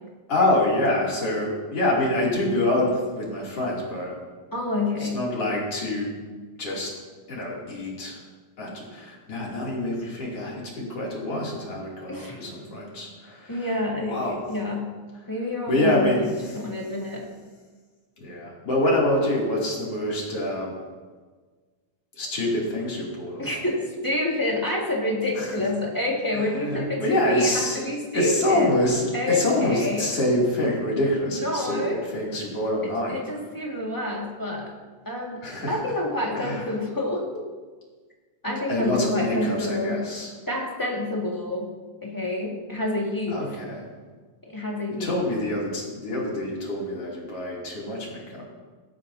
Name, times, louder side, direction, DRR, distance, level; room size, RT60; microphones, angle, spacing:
voice 1, 0.3-4.2 5.0-6.1 6.6-6.9 7.3-8.2 8.6-13.7 14.0-14.4 15.7-16.6 18.2-20.8 22.1-23.7 25.4-25.5 26.3-27.9 28.1-33.2 35.4-35.8 36.4-36.7 38.7-40.3 43.3-43.9 45.0-48.4, left 1 dB, 45° left, -4 dB, 3.7 m, -26 dB
voice 2, 4.5-5.2 12.1-12.5 13.5-14.9 15.3-16.3 16.5-17.2 23.4-28.7 29.1-30.1 31.4-32.0 32.8-34.7 35.0-35.4 35.7-37.2 38.4-40.0 40.5-41.7 42.0-43.4 44.4-45.2, left 2 dB, 15° left, -3 dB, 0.7 m, -28 dB
17.0 x 13.5 x 2.8 m, 1.4 s
omnidirectional pair, 4.1 m